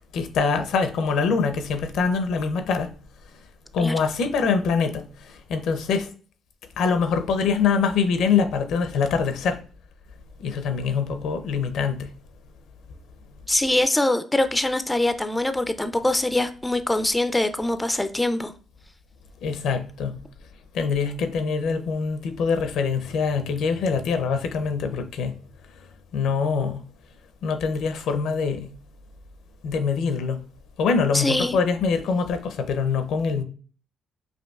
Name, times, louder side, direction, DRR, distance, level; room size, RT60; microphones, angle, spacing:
voice 1, 0.1-2.9 3.7-5.0 5.5-6.1 6.8-9.6 10.4-12.0 19.4-20.1 20.7-25.3 26.1-26.8 27.4-28.7 29.6-30.4 30.8-33.4, left 5 dB, 80° left, 0.5 m, -24 dB
voice 2, 13.5-18.5 31.1-31.6, left 1 dB, 10° left, 0.3 m, -23 dB
5.1 x 2.6 x 2.3 m
cardioid pair, 90°, 0 cm